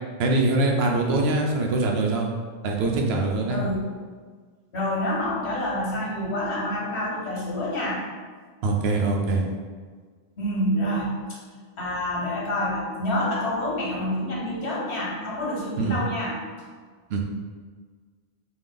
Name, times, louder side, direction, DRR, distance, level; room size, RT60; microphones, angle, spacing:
voice 1, 0.2-2.3 2.6-3.6 8.6-9.4 15.8-16.0 17.1-17.2, right 2 dB, 75° right, 1 dB, 0.8 m, -23 dB
voice 2, 3.5-3.9 4.7-8.0 10.4-11.4 11.8-16.4, left 1 dB, 85° left, -4 dB, 1.2 m, -27 dB
3.5 x 2.3 x 3.8 m, 1.6 s
omnidirectional pair, 1.1 m